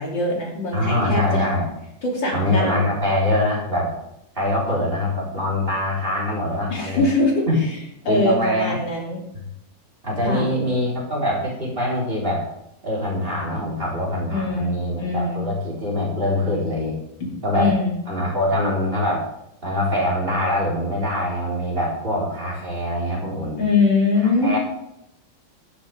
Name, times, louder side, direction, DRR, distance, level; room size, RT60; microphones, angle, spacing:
voice 1, 0.0-1.5 2.0-2.8 6.7-7.8 8.1-9.2 10.2-10.5 14.3-15.4 17.5-18.0 23.6-24.5, left 3 dB, 70° left, -2 dB, 3.5 m, -22 dB
voice 2, 0.7-1.6 2.3-3.9 4.3-7.0 7.5-7.6 8.1-8.8 9.3-9.4 10.0-12.5 12.8-17.0 17.4-17.7 18.1-19.3 19.6-23.6 24.4-24.6, left 1 dB, 25° right, -5 dB, 4.3 m, -23 dB
12.0 x 11.5 x 3.5 m, 0.80 s
omnidirectional pair, 2.1 m